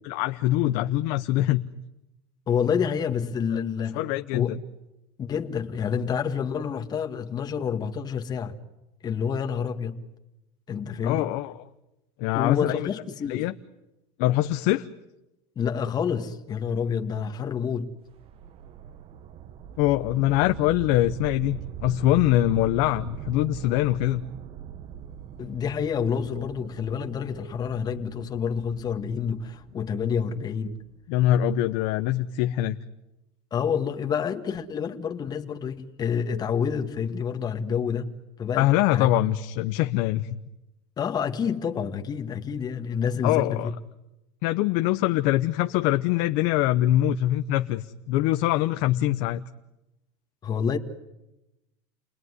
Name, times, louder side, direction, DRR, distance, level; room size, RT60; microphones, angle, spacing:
voice 1, 0.0-1.6 3.5-3.6 3.9-4.6 11.0-11.6 12.2-12.9 13.3-13.5 14.2-14.9 19.8-24.2 31.1-32.8 38.6-40.3 43.2-43.7 44.4-49.4, left 14 dB, 65° left, 0.9 m, -23 dB
voice 2, 2.5-4.0 4.3-4.6 5.2-8.5 9.0-10.0 10.7-11.3 12.3-13.5 15.6-17.9 25.4-30.8 33.5-39.1 41.0-43.7 50.4-50.8, left 7 dB, 30° left, 1.8 m, -28 dB
sound 1, 18.1-31.2, right 8 dB, 45° right, 1.2 m, -41 dB
29.5 x 20.5 x 9.7 m
supercardioid pair, 135°, 14 cm